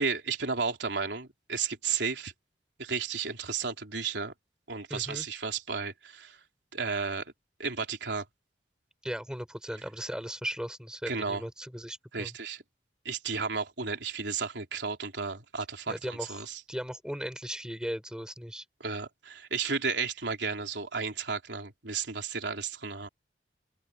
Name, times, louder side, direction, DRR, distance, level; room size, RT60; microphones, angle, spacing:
voice 1, 0.0-2.3 2.8-4.3 4.7-6.4 6.7-7.2 7.6-8.2 11.1-11.4 12.1-12.6 13.1-16.6 18.8-23.1, right 5 dB, 85° right, 3.5 m, -33 dB
voice 2, 4.9-5.3 9.0-12.3 15.9-18.6, equal, 5° right, 5.3 m, -37 dB
head